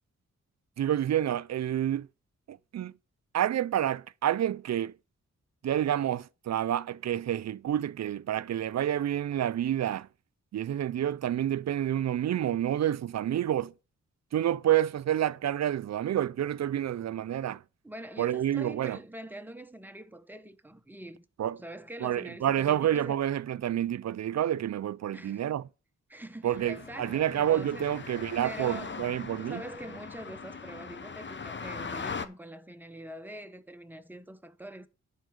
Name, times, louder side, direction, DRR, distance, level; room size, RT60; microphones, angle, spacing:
voice 1, 0.8-2.1 2.5-2.9 3.3-4.9 5.6-10.1 10.5-13.7 14.3-17.6 18.2-19.0 21.4-21.6 22.0-25.6 26.4-29.6, right 11 dB, 65° right, 0.5 m, -29 dB
voice 2, 17.8-21.2 21.5-23.2 25.1-25.5 26.1-27.9 28.4-29.0 29.4-34.9, right 1 dB, 5° right, 1.1 m, -44 dB
sound 1, 26.5-32.3, left 5 dB, 40° left, 1.1 m, -40 dB
11.0 x 4.7 x 6.5 m
cardioid pair, 70°, 29 cm